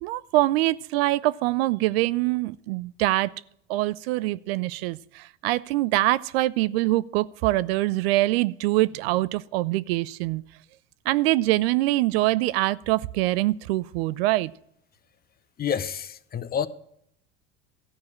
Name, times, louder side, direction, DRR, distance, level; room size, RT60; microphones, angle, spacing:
voice 1, 0.0-3.3 3.7-10.4 11.1-14.5, right 18 dB, 75° right, 0.5 m, -24 dB
voice 2, 15.6-16.7, left 8 dB, 30° left, 0.7 m, -28 dB
14.0 x 4.7 x 8.4 m
hypercardioid pair, 85°, 31 cm